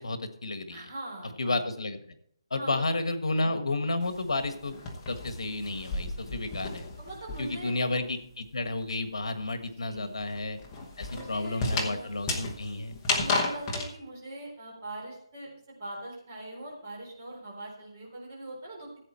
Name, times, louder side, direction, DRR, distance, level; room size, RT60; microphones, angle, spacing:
voice 1, 0.0-0.8 1.4-2.0 2.5-4.8 5.1-6.9 7.4-10.6 11.0-13.3, left 2 dB, 75° left, 8 dB, 1.6 m, -31 dB
voice 2, 0.7-1.5 2.6-2.8 3.3-3.5 7.0-8.1 9.6-10.1 11.1-12.1 13.2-19.0, right 1 dB, 25° right, -2 dB, 3.8 m, -42 dB
sound 1, 4.0-7.8 8.0-13.9, left 3 dB, 10° left, 1.0 m, -33 dB
15.0 x 8.4 x 4.4 m, 0.68 s
hypercardioid pair, 180°, 3 cm